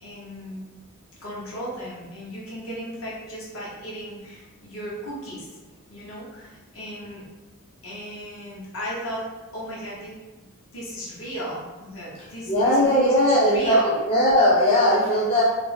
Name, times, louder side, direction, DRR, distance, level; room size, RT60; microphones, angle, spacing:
voice 1, 0.0-0.7 1.2-5.5 5.9-7.2 7.8-9.3 9.5-10.1 10.7-13.9, equal, 65° left, -6 dB, 0.8 m, -35 dB
voice 2, 12.5-13.8 14.1-15.4, equal, 25° left, -7 dB, 0.4 m, -18 dB
2.5 x 2.0 x 3.0 m, 1.2 s
head